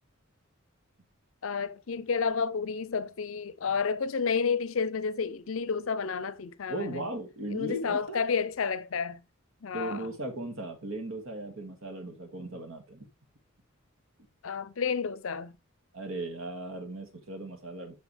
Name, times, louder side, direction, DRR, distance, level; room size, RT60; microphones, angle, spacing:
voice 1, 1.4-7.0 7.5-9.2 9.6-10.1 14.4-15.5, left 5 dB, 70° left, 0.6 m, -30 dB
voice 2, 6.7-8.2 9.7-13.1 15.9-18.0, right 1 dB, 70° right, 2.1 m, -37 dB
8.4 x 5.8 x 3.3 m
head